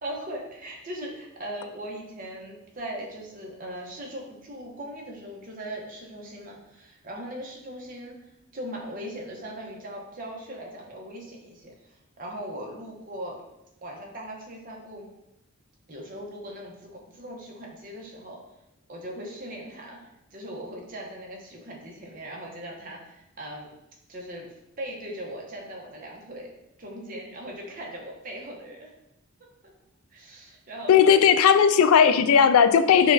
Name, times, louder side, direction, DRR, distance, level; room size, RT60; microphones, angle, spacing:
voice 1, 0.0-8.2 8.5-13.4 13.8-15.1 15.9-18.4 18.9-23.7 24.1-26.5 26.8-28.9 30.1-31.1, right 1 dB, 40° right, -1 dB, 0.9 m, -39 dB
voice 2, 30.9-33.1, left 7 dB, 85° left, 11 dB, 0.3 m, -17 dB
5.7 x 2.3 x 3.9 m, 0.88 s
head